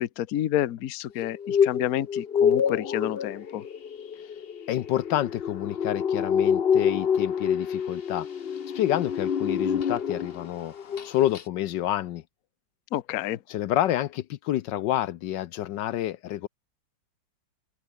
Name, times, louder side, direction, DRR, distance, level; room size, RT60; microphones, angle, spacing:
voice 1, 0.0-3.6 12.9-13.4, left 12 dB, 60° left, 1.1 m, -29 dB
sound 1, 1.2-10.5 10.8-11.1 11.4-11.5, left 7 dB, 45° left, 0.9 m, -27 dB
voice 2, 4.7-8.3 8.7-10.7 11.0-12.2 13.5-16.5, left 13 dB, 75° left, 1.3 m, -28 dB
open air
omnidirectional pair, 2.0 m